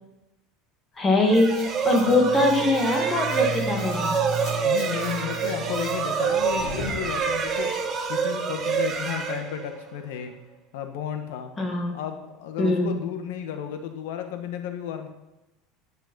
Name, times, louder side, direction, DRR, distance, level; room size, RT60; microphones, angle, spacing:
voice 1, 1.0-4.2 11.6-11.9 12.6-13.0, left 2 dB, 15° left, 2 dB, 2.1 m, -22 dB
sound 1, 1.2-10.0, right 6 dB, 20° right, 1.4 m, -27 dB
sound 2, 1.3-7.7, right 1 dB, 35° left, 5.7 m, -36 dB
voice 2, 4.6-7.7 8.1-10.3 10.7-11.5 11.9-15.1, left 9 dB, 80° left, 7 dB, 1.6 m, -33 dB
11.0 x 10.0 x 5.4 m, 0.95 s
cardioid pair, 175°, 0 cm